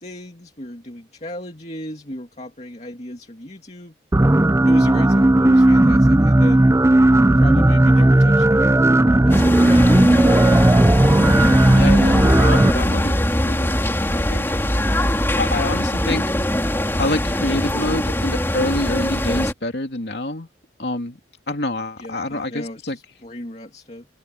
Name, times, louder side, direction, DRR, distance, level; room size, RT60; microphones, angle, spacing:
voice 1, 0.0-3.9 4.7-6.7 7.2-8.8 9.2-10.6 22.0-24.1, left 1 dB, 35° left, 2.4 m, -35 dB
sound 1, 4.1-12.7, right 1 dB, 15° right, 0.5 m, -14 dB
sound 2, 9.3-19.5, left 1 dB, 15° left, 3.1 m, -21 dB
voice 2, 11.7-14.4 15.4-16.2 17.0-20.5 20.8-21.2 21.5-23.0, left 2 dB, 60° left, 2.8 m, -26 dB
open air
head